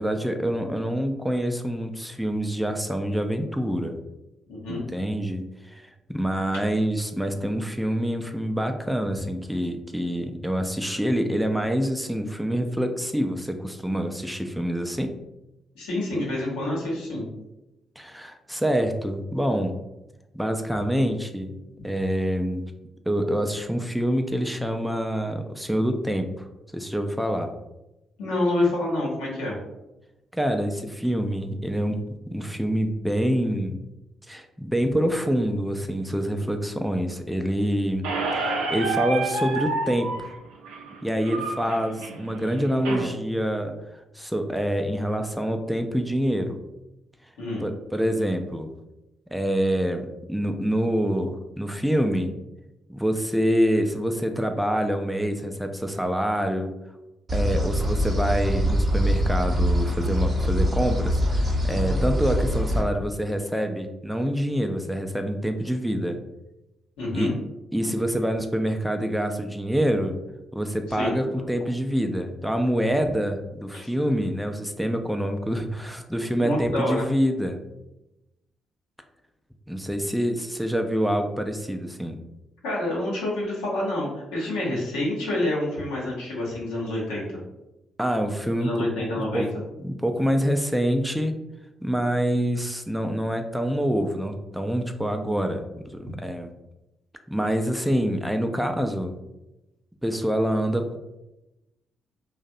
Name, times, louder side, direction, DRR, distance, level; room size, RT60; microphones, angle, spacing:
voice 1, 0.0-4.0 4.7-15.1 18.0-19.7 20.3-21.5 21.8-22.7 23.1-26.5 26.7-27.5 30.3-32.0 32.3-33.8 34.3-38.1 38.4-40.3 41.0-46.6 47.6-48.7 49.3-52.3 52.9-56.7 57.3-66.2 67.1-67.3 67.7-70.2 70.5-77.6 79.7-82.2 88.0-88.9 89.3-89.5 89.8-91.3 91.8-95.6 95.9-96.5 97.3-99.2 100.0-101.0, equal, 5° right, 5 dB, 0.3 m, -26 dB
voice 2, 4.5-4.8 15.7-17.3 28.2-29.6 47.4-47.6 67.0-67.3 70.9-71.2 73.7-73.9 76.4-77.1 82.6-87.4 88.6-89.5, left 1 dB, 80° left, -4 dB, 0.7 m, -27 dB
Squeak, 38.0-43.0, right 3 dB, 80° right, 0.4 m, -29 dB
sound 1, 57.3-62.8, equal, 40° right, 0.7 m, -23 dB
2.6 x 2.0 x 2.5 m, 0.95 s
hypercardioid pair, 45°, 0 cm